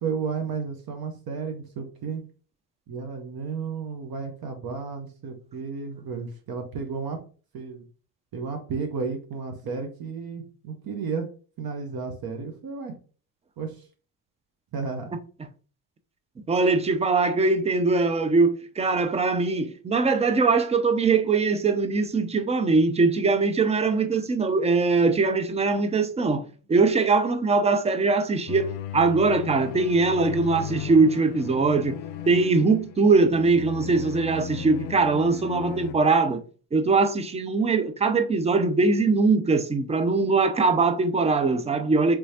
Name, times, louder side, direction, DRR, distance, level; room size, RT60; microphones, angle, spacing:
voice 1, 0.0-2.2 2.9-7.2 7.5-7.8 8.3-11.3 11.6-12.9 13.6-13.8 14.7-15.1, right 5 dB, 50° right, 0.8 m, -32 dB
voice 2, 16.5-32.0 32.3-36.4 36.7-42.2, right 3 dB, 15° right, 0.4 m, -22 dB
sound 1, 28.5-35.9, left 10 dB, 75° left, 0.5 m, -36 dB
3.4 x 3.0 x 2.7 m
supercardioid pair, 60°, 46 cm